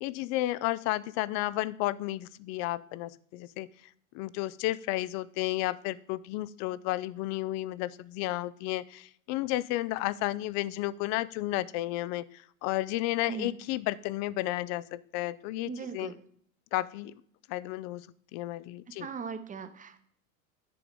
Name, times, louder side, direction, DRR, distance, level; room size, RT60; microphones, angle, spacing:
voice 1, 0.0-3.7 4.1-12.3 12.6-16.1 16.7-17.1 17.5-18.1 18.3-19.1, left 17 dB, 40° left, 20 dB, 0.5 m, -32 dB
voice 2, 15.6-16.2 18.9-20.1, right 5 dB, 20° right, 11 dB, 0.9 m, -39 dB
10.5 x 4.7 x 5.3 m, 0.63 s
hypercardioid pair, 105°, 41 cm